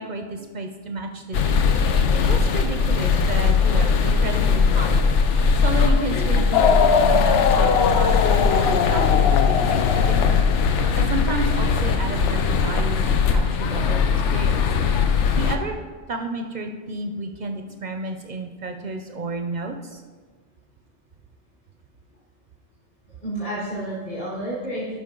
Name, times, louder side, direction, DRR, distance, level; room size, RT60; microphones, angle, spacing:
voice 1, 0.0-2.0 2.3-10.4 10.8-13.0 13.3-14.7 15.4-15.8 16.1-20.0, right 2 dB, 50° right, 5 dB, 0.6 m, -32 dB
sound 1, 1.3-15.6, left 5 dB, 90° left, 1.0 m, -20 dB
sound 2, 6.5-11.1, left 6 dB, 70° left, 0.8 m, -21 dB
voice 2, 23.1-25.0, right 1 dB, 40° left, -7 dB, 1.8 m, -31 dB
12.0 x 5.1 x 3.8 m, 1.4 s
omnidirectional pair, 1.2 m